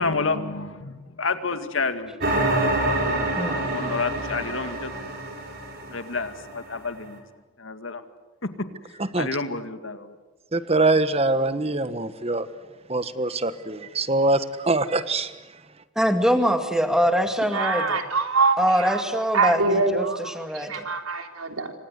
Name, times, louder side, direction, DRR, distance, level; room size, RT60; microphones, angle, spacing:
voice 1, 0.0-4.9 5.9-7.2 7.6-8.0 9.2-10.2, left 4 dB, 70° left, 9 dB, 2.2 m, -30 dB
sound 1, 2.2-6.7, right 2 dB, 50° right, 5.0 m, -27 dB
voice 2, 10.5-12.5 12.9-15.3, right 2 dB, 30° right, 12 dB, 1.3 m, -23 dB
voice 3, 16.0-18.0 18.6-20.1 20.3-20.8, equal, 5° right, 6 dB, 2.3 m, -23 dB
voice 4, 17.5-19.0 19.3-21.7, right 4 dB, 90° right, 5 dB, 3.6 m, -24 dB
28.5 x 25.5 x 8.2 m, 1.2 s
head